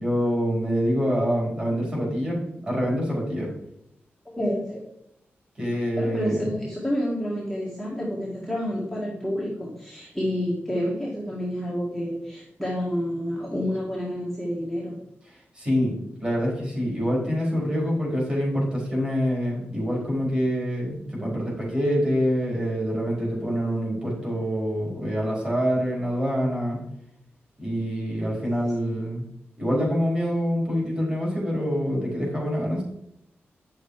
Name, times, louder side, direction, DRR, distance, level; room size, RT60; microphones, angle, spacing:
voice 1, 0.0-3.5 5.6-6.5 15.3-15.9 16.2-26.8 27.6-29.2 29.6-32.8, equal, 25° right, -4 dB, 4.4 m, -26 dB
voice 2, 4.4-4.8 6.0-15.0, equal, ahead, -6 dB, 1.8 m, -29 dB
9.2 x 6.7 x 4.9 m, 0.77 s
wide cardioid pair, 170°, 4 cm